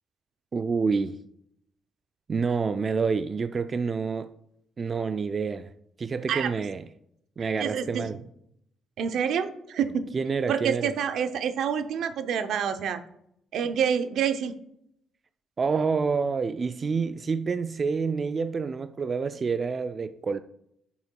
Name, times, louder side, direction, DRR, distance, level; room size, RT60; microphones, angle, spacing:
voice 1, 0.5-1.2 2.3-4.3 4.8-5.7 6.0-6.9 7.4-8.2 10.1-10.9 15.6-20.4, right 5 dB, 40° right, 0.3 m, -28 dB
voice 2, 7.6-8.1 9.0-10.1 10.5-13.0 13.5-14.5, right 7 dB, 75° right, 0.6 m, -27 dB
10.5 x 6.8 x 2.3 m
cardioid pair, 90°, 0 cm